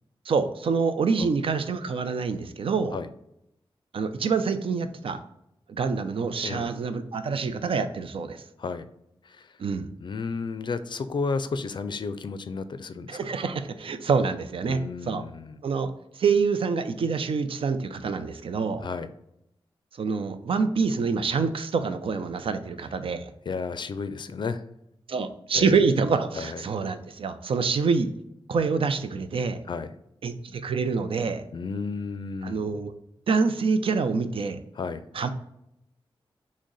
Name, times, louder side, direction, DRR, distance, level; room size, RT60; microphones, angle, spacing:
voice 1, 0.3-3.0 3.9-5.2 5.7-8.4 9.6-9.9 13.1-15.2 15.6-18.8 20.0-23.3 25.1-28.1 28.5-29.6 30.2-31.4 32.4-32.9 33.3-34.6 35.1-35.3, right 5 dB, 75° right, 9 dB, 0.5 m, -26 dB
voice 2, 6.4-6.8 8.6-8.9 9.2-9.5 10.0-13.3 14.7-15.6 18.8-19.1 23.5-24.6 25.6-25.8 26.3-26.6 29.7-29.9 31.5-32.6 34.8-35.0, left 4 dB, 55° left, 12 dB, 0.4 m, -32 dB
6.2 x 2.1 x 3.9 m, 0.80 s
wide cardioid pair, 130°, 9 cm